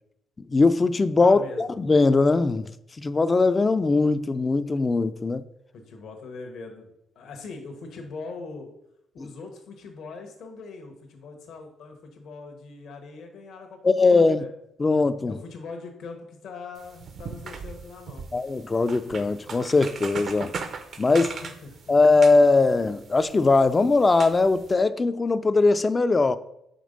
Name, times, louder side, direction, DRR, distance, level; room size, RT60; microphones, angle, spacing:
voice 1, 0.5-2.7 3.0-5.4 9.2-9.3 13.8-14.4 14.8-15.4 18.3-20.5 21.0-21.3 21.9-26.4, left 3 dB, 25° left, 0.4 m, -20 dB
voice 2, 1.2-1.7 5.7-8.7 9.1-14.5 15.2-18.2 21.1-21.8, left 4 dB, 75° left, 1.1 m, -41 dB
sound 1, 16.8-24.7, right 5 dB, 55° right, 0.6 m, -39 dB
5.1 x 3.6 x 5.2 m
cardioid pair, 90°, 0 cm